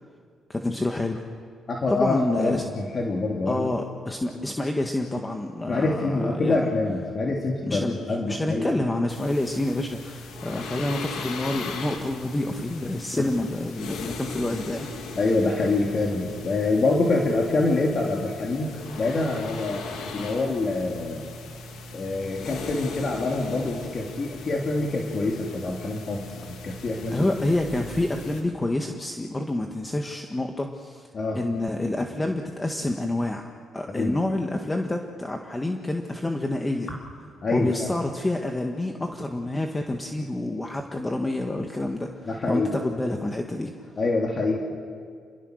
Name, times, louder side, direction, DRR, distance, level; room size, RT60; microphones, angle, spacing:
voice 1, 0.5-1.2 1.9-2.6 3.5-6.7 7.7-14.9 27.1-31.1 31.3-33.5 33.7-36.9 37.5-43.7, left 1 dB, 15° left, 3 dB, 1.7 m, -28 dB
voice 2, 1.7-3.7 5.7-8.7 10.5-10.6 13.1-13.2 15.2-21.3 21.9-27.2 31.1-31.4 33.9-34.2 36.9-37.0 37.4-37.9 42.3-42.7 44.0-44.6, left 3 dB, 40° left, -1 dB, 3.0 m, -26 dB
sound 1, 9.1-28.4, left 3 dB, 85° left, 3.2 m, -38 dB
28.0 x 21.5 x 6.6 m, 2.1 s
cardioid pair, 90°, 0 cm